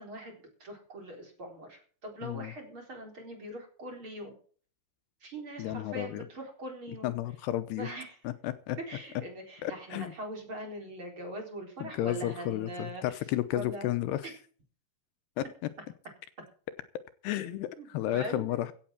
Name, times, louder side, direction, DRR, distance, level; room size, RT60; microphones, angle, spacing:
voice 1, 0.0-4.4 5.2-7.1 7.8-8.2 8.8-13.2 13.5-14.0 14.2-14.4 17.5-18.6, right 1 dB, 30° right, 2 dB, 4.5 m, -42 dB
voice 2, 2.2-2.5 5.6-6.2 7.0-7.9 8.2-8.8 9.6-10.1 11.8-12.7 13.0-14.2 15.4-15.5 17.2-18.7, left 13 dB, 80° left, 13 dB, 2.8 m, -32 dB
16.0 x 8.8 x 5.9 m, 0.43 s
omnidirectional pair, 4.9 m